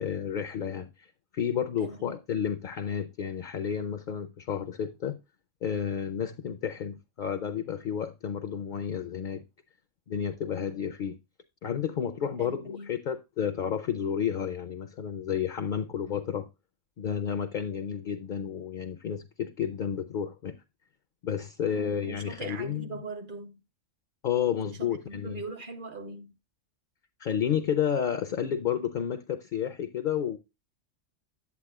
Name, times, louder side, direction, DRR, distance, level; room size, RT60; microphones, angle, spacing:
voice 1, 0.0-5.2 5.6-9.4 10.1-11.2 11.6-16.5 17.0-20.6 21.2-22.9 24.2-25.4 27.2-30.4, left 8 dB, 60° left, 0.5 m, -31 dB
voice 2, 1.8-2.1 12.4-12.9 21.7-23.6 24.8-26.3, right 3 dB, 50° right, 0.8 m, -41 dB
8.4 x 8.1 x 2.3 m
omnidirectional pair, 1.3 m